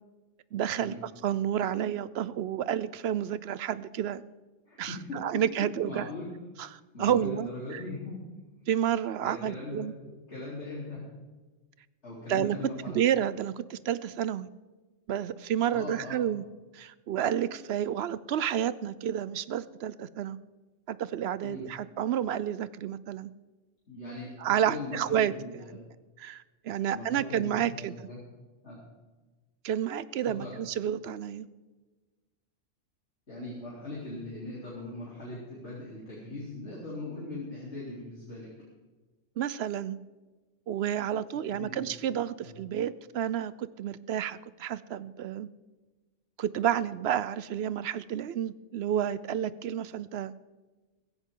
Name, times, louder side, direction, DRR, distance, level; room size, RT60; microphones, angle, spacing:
voice 1, 0.5-0.9 1.2-4.2 4.8-6.1 6.6-7.8 8.7-9.9 12.3-12.6 12.9-14.5 15.1-16.4 16.7-20.4 20.9-23.3 24.4-25.3 26.2-27.9 29.6-31.5 39.4-40.0 40.7-45.5 46.4-50.3, right 10 dB, 65° right, 17 dB, 0.8 m, -30 dB
voice 2, 4.7-6.3 6.9-8.3 9.2-9.9 10.3-11.1 12.0-13.0 15.7-16.2 21.4-21.6 23.9-25.8 26.9-28.2 28.6-28.8 30.2-30.5 33.3-38.5 41.5-41.9 42.4-42.5, left 2 dB, 60° left, -7 dB, 3.8 m, -40 dB
16.0 x 15.5 x 3.8 m, 1.2 s
omnidirectional pair, 1.3 m